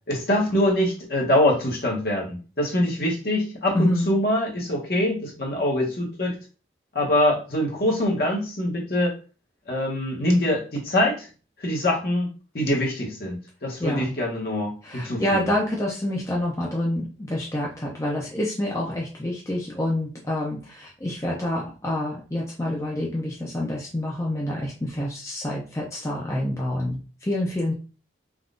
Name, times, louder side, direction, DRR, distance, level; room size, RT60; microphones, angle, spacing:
voice 1, 0.1-6.3 6.9-9.1 9.7-11.3 11.6-12.3 12.5-15.4, left 1 dB, 55° left, -1 dB, 1.0 m, -24 dB
voice 2, 3.7-4.1 13.8-14.1 14.8-27.7, left 1 dB, 15° left, -3 dB, 0.5 m, -27 dB
3.5 x 2.3 x 2.5 m, 0.36 s
head